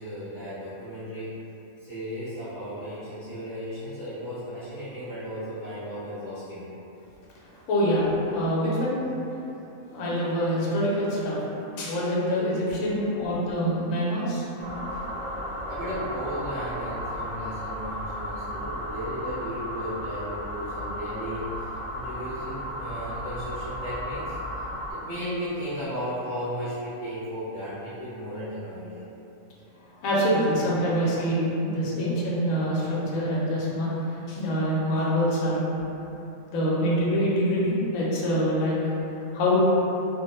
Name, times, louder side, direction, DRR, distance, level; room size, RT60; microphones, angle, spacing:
voice 1, 0.0-1.4 1.8-6.7 12.8-13.0 15.7-29.0, equal, 40° left, -14 dB, 0.9 m, -35 dB
voice 2, 7.7-9.0 9.9-11.4 11.8-14.4 30.0-33.9 34.3-35.7 36.5-38.8 39.3-39.6, equal, 75° left, -6 dB, 1.0 m, -25 dB
sound 1, 14.6-24.9, equal, 75° right, 1.0 m, -34 dB
2.5 x 2.0 x 2.9 m, 2.9 s
omnidirectional pair, 1.5 m